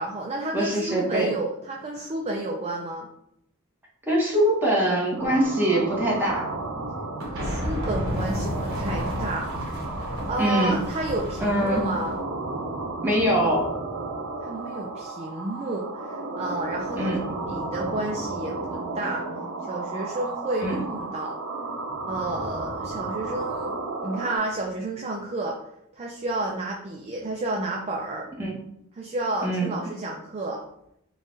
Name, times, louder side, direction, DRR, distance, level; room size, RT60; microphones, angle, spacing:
voice 1, 0.0-3.1 7.3-9.5 10.3-12.2 14.4-17.2 17.5-19.2 19.7-21.4 22.1-23.7 24.0-25.6 25.9-28.3 28.9-30.6, right 2 dB, 30° right, -1 dB, 0.4 m, -31 dB
voice 2, 0.5-1.3 4.1-6.5 10.4-10.8 11.4-11.8 13.0-13.7 17.0-17.2 20.6-20.8 28.4-28.5 29.4-29.8, right 1 dB, 10° right, -4 dB, 1.1 m, -23 dB
sound 1, 5.2-24.4, right 3 dB, 75° right, 0.7 m, -33 dB
sound 2, 7.2-12.2, equal, 60° right, 1.3 m, -31 dB
4.0 x 2.4 x 3.8 m, 0.77 s
head